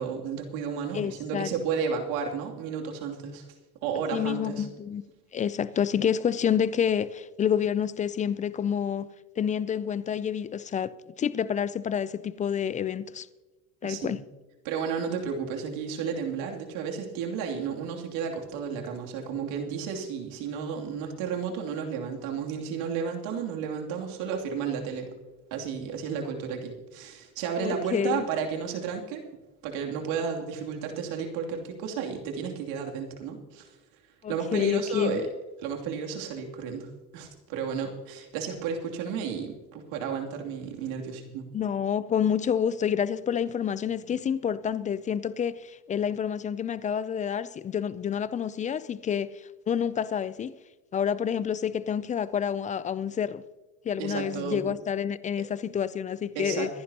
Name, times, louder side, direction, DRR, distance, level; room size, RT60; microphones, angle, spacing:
voice 1, 0.0-3.5 3.8-4.7 13.8-14.2 14.6-25.1 25.5-29.3 29.6-33.7 34.3-35.3 35.6-41.5 54.0-54.7 56.3-56.8, right 6 dB, 70° right, 2.9 m, -32 dB
voice 2, 0.9-1.5 4.1-5.0 5.3-9.1 9.4-10.9 11.2-13.3 13.8-14.2 27.6-28.2 34.2-35.3 41.5-50.5 50.9-53.4 53.8-56.7, left 8 dB, 20° left, 0.3 m, -28 dB
24.5 x 11.0 x 2.9 m
supercardioid pair, 100°, 49 cm